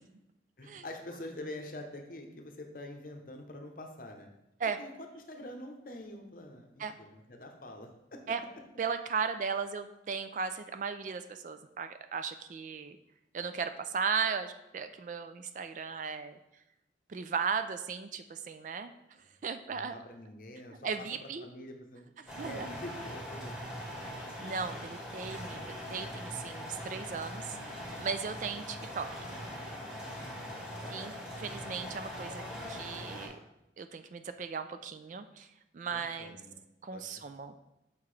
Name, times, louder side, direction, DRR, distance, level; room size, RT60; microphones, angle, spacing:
voice 1, 0.6-4.3 4.6-8.3 19.7-20.9 21.2-22.1 22.4-23.5 30.2-30.9 35.9-36.6 36.9-37.0 37.4-37.6, left 1 dB, 50° left, 4 dB, 0.8 m, -46 dB
voice 2, 8.8-13.0 13.3-16.4 17.1-18.9 19.4-19.9 20.8-21.5 22.2-22.8 24.0-24.1 24.4-27.6 28.0-29.3 30.9-32.4 32.7-33.4 33.8-35.5 35.7-36.4 36.8-37.6, right 6 dB, 45° right, 10 dB, 0.3 m, -36 dB
sound 1, 22.3-33.3, equal, 5° right, 1.8 m, -41 dB
6.0 x 5.7 x 3.2 m, 0.89 s
head